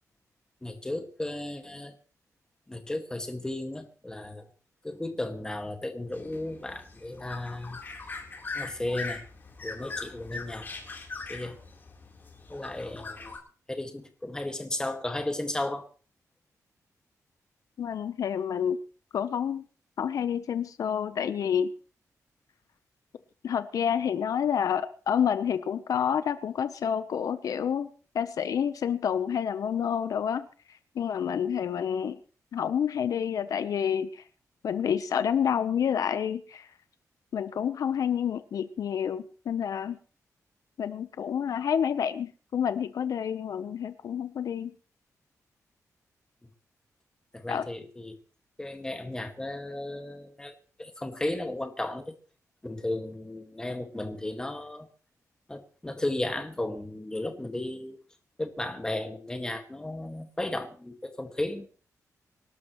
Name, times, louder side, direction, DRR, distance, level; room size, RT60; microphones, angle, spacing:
voice 1, 0.6-1.9 2.7-4.4 4.8-7.8 8.5-9.2 9.6-10.7 11.3-11.6 12.5-13.3 13.7-15.9 47.3-48.2 48.6-52.1 52.6-54.9 55.5-58.0 58.4-61.7, left 1 dB, 10° left, 5 dB, 1.8 m, -34 dB
sound 1, 6.1-13.4, left 3 dB, 35° left, 3.8 m, -41 dB
voice 2, 17.8-18.8 19.1-19.6 20.0-21.7 23.4-27.9 28.1-30.5 30.9-32.2 32.5-34.2 34.6-36.7 37.3-40.0 40.8-44.7 47.5-47.6, left 8 dB, 75° left, 12 dB, 0.8 m, -28 dB
25.5 x 12.0 x 3.1 m, 0.39 s
wide cardioid pair, 150°, 6 cm